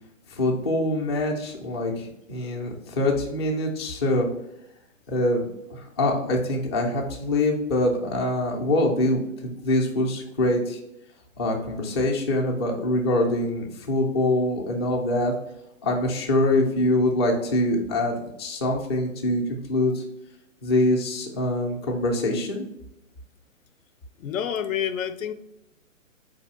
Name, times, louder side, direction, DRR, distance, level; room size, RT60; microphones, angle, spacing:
voice 1, 0.3-4.3 5.1-10.8 11.4-15.3 15.8-20.0 20.6-22.7, left 1 dB, 20° left, -1 dB, 0.4 m, -24 dB
voice 2, 24.2-25.3, left 9 dB, 80° left, 12 dB, 0.5 m, -28 dB
4.0 x 2.7 x 4.1 m, 0.83 s
hypercardioid pair, 135°, 39 cm